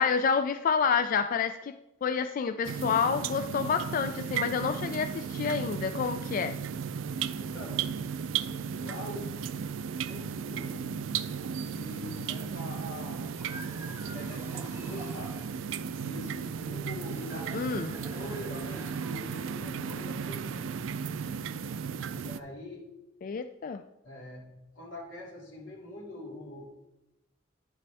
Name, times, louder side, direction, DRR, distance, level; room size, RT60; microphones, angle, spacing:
voice 1, 0.0-1.7 2.0-6.6 17.5-17.9 23.2-23.8, left 6 dB, 45° left, 10 dB, 0.3 m, -28 dB
sound 1, 2.6-22.4, right 6 dB, 80° right, 0.4 m, -35 dB
voice 2, 7.4-8.0 8.8-9.4 10.1-10.9 11.7-13.3 14.0-15.4 16.0-17.5 17.9-20.8 22.2-22.9 24.0-26.7, left 1 dB, 90° left, -2 dB, 2.5 m, -44 dB
sound 2, 13.2-15.6 17.0-19.4, right 1 dB, 15° right, 1.4 m, -47 dB
10.0 x 6.7 x 3.4 m, 0.95 s
head